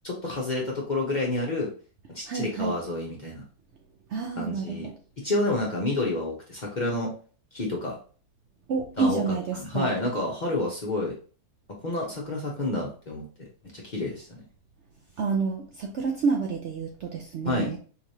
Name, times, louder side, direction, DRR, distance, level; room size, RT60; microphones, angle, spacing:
voice 1, 0.0-1.7 2.1-3.4 4.4-4.9 5.2-7.1 7.5-8.0 9.0-9.2 9.5-11.1 11.8-13.2 13.7-14.4 17.4-17.7, left 2 dB, 40° left, -2 dB, 0.7 m, -29 dB
voice 2, 2.3-2.8 4.1-4.9 8.7-9.9 15.2-17.8, right 5 dB, 65° right, 2 dB, 0.7 m, -29 dB
3.9 x 3.1 x 2.7 m, 0.40 s
omnidirectional pair, 1.6 m